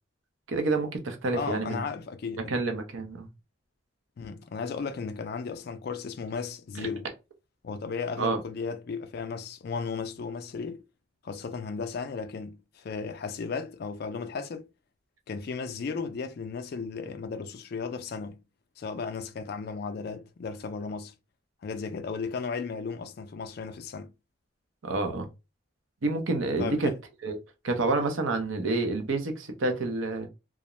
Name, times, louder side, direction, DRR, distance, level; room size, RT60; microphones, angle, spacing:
voice 1, 0.5-1.8 2.5-3.3 8.2-8.4 24.8-25.3 26.0-26.9 27.2-27.4 27.6-30.3, right 3 dB, 75° right, 0.7 m, -28 dB
voice 2, 1.3-2.7 4.2-7.1 7.6-10.8 11.2-14.7 15.3-18.4 18.8-21.1 21.6-24.1 26.6-27.0, left 5 dB, 50° left, 0.3 m, -35 dB
2.4 x 2.0 x 2.9 m
head